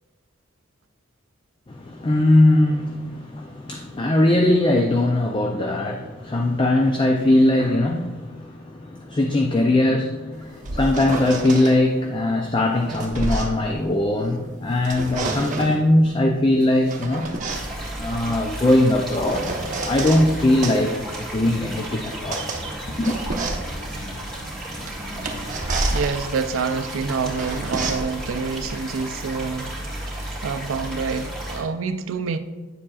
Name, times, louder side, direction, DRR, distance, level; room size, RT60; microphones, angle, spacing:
voice 1, 1.7-17.3 18.0-19.5 19.8-22.4 23.0-23.2, left 1 dB, 25° left, 0.4 m, -20 dB
sound 1, 10.4-11.8 12.6-14.4 14.7-15.8 16.6-20.3 20.6-29.7, right 2 dB, 40° right, 0.9 m, -30 dB
sound 2, 17.5-31.6, right 1 dB, 5° left, 2.1 m, -33 dB
voice 2, 25.9-29.7 30.1-32.4, right 5 dB, 75° right, 0.4 m, -27 dB
9.8 x 7.3 x 2.4 m
head